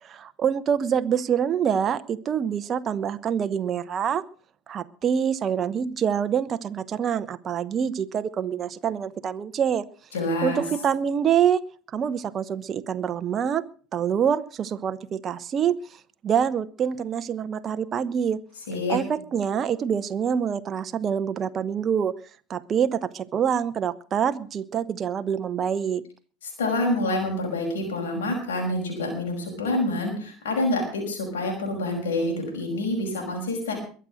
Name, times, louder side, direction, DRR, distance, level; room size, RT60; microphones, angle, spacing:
voice 1, 0.0-4.2 4.7-9.8 10.4-11.6 11.9-13.6 13.9-18.4 18.9-22.1 22.5-26.0, right 8 dB, 35° right, 11 dB, 0.9 m, -26 dB
voice 2, 10.1-10.6 18.7-19.0 26.4-33.7, left 1 dB, 80° left, 0 dB, 5.7 m, -27 dB
22.0 x 7.9 x 6.3 m, 0.42 s
hypercardioid pair, 80°, 0 cm